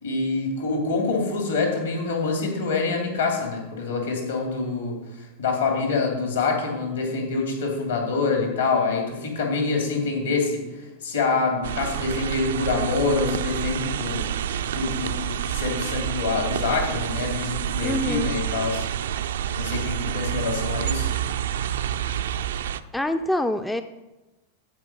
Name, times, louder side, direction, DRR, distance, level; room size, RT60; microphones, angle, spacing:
voice 1, 0.0-14.2 14.7-18.9 19.5-21.1, left 4 dB, 65° left, 1 dB, 2.9 m, -26 dB
sound 1, 11.6-22.8, right 10 dB, 60° right, 0.4 m, -28 dB
voice 2, 17.8-18.4 22.9-23.8, left 1 dB, 5° left, 9 dB, 0.4 m, -25 dB
13.5 x 4.9 x 5.6 m, 1.0 s
figure-of-eight pair, 90°, 0 cm